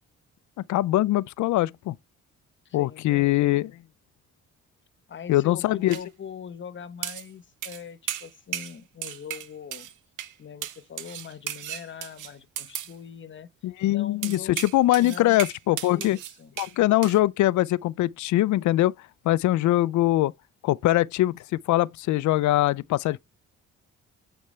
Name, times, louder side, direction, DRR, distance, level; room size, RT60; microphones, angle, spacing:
voice 1, 0.7-1.9 2.7-3.7 5.3-6.0 13.6-16.2 16.6-18.9 19.2-20.3 20.6-23.2, left 15 dB, 70° left, 0.5 m, -22 dB
voice 2, 2.6-3.8 5.1-9.9 10.4-13.5 13.9-14.7 15.0-15.4 15.9-16.6, left 7 dB, 40° left, 1.0 m, -42 dB
sound 1, 5.9-6.0 7.0-7.3 7.6-7.8 8.1-8.8 9.0-9.9 10.2-10.3 10.6-12.9 14.2-16.7 17.0-17.2, right 11 dB, 90° right, 0.9 m, -35 dB
8.7 x 4.4 x 3.2 m
cardioid pair, 90°, 30 cm